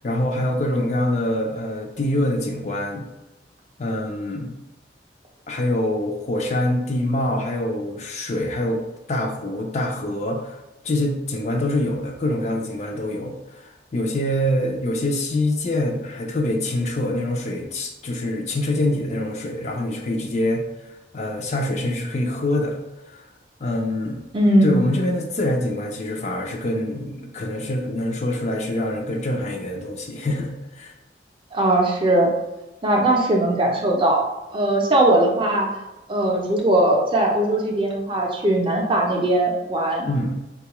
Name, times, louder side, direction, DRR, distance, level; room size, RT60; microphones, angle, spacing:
voice 1, 0.0-3.1 3.8-4.6 5.5-10.6 10.8-20.6 21.1-22.8 23.1-23.3 23.6-24.2 24.6-30.9 40.0-40.4, left 1 dB, 40° left, 1 dB, 0.4 m, -25 dB
voice 2, 24.3-24.9 31.5-32.3 32.8-34.2 34.5-35.7 36.1-40.1, right 1 dB, 30° right, 0 dB, 0.5 m, -19 dB
3.8 x 2.3 x 2.9 m, 1.0 s
head